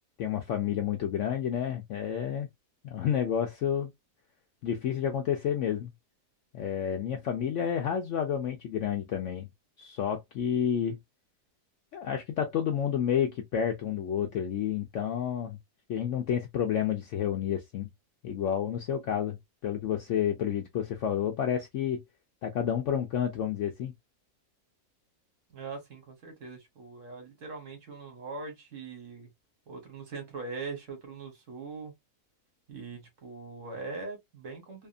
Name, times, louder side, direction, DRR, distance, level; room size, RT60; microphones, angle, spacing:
voice 1, 0.2-2.5 2.8-3.9 4.6-5.9 6.5-9.5 9.8-11.0 11.9-15.6 15.9-17.9 18.2-19.4 19.6-22.0 22.4-23.9, left 9 dB, 70° left, 0.7 m, -30 dB
voice 2, 25.5-29.3 29.7-31.9 32.7-34.9, right 4 dB, 55° right, 1.3 m, -41 dB
2.8 x 2.4 x 2.4 m
omnidirectional pair, 1.7 m